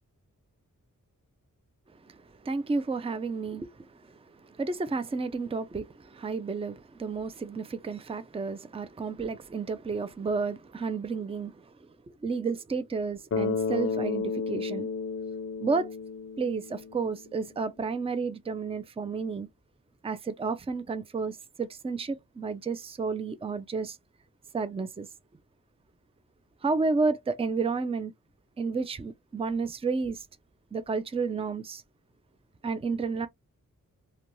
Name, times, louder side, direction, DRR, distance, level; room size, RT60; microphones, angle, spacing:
voice 1, 2.5-3.7 4.6-5.9 6.2-11.5 12.2-14.9 15.6-15.9 16.4-19.5 20.0-24.0 24.5-25.1 26.6-28.1 28.6-30.2 30.7-31.8 32.6-33.3, right 4 dB, 15° right, 0.4 m, -31 dB
Bass guitar, 13.3-17.3, left 5 dB, 45° left, 0.5 m, -32 dB
2.4 x 2.2 x 3.0 m
wide cardioid pair, 55°, 34 cm